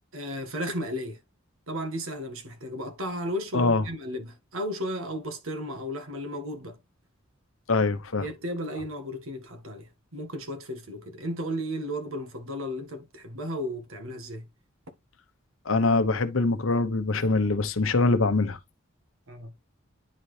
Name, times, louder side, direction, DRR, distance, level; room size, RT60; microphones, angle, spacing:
voice 1, 0.1-1.2 1.7-6.8 8.2-14.5 19.3-19.5, equal, 90° right, 1.7 m, -34 dB
voice 2, 3.5-3.8 7.7-8.2 15.7-18.6, left 3 dB, 75° left, 1.0 m, -23 dB
10.0 x 4.2 x 3.3 m
head